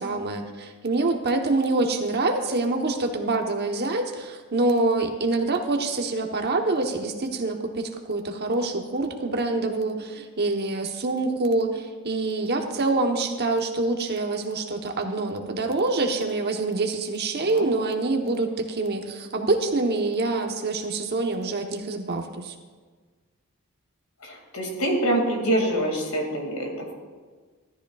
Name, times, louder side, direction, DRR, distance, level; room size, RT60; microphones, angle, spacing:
voice 1, 0.0-22.5, right 2 dB, 50° right, 4 dB, 1.1 m, -26 dB
voice 2, 24.2-26.9, right 1 dB, 80° left, 1 dB, 2.4 m, -25 dB
14.5 x 13.0 x 2.4 m, 1.4 s
head